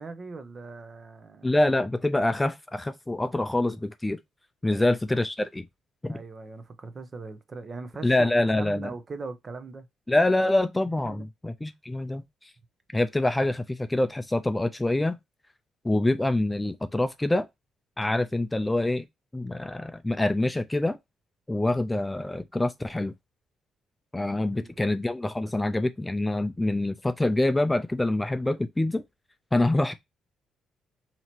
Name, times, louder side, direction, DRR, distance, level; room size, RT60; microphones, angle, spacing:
voice 1, 0.0-1.5 4.7-4.8 6.1-8.3 8.6-9.9 10.9-11.3 24.5-25.0, right 4 dB, 35° right, 0.7 m, -40 dB
voice 2, 1.4-4.2 4.6-5.6 6.0-6.2 8.0-8.9 10.1-12.2 12.9-15.2 15.8-17.5 18.0-19.0 19.3-21.0 21.5-23.1 24.1-29.0 29.5-29.9, left 2 dB, 10° left, 0.4 m, -25 dB
2.9 x 2.8 x 4.3 m
cardioid pair, 90°, 0 cm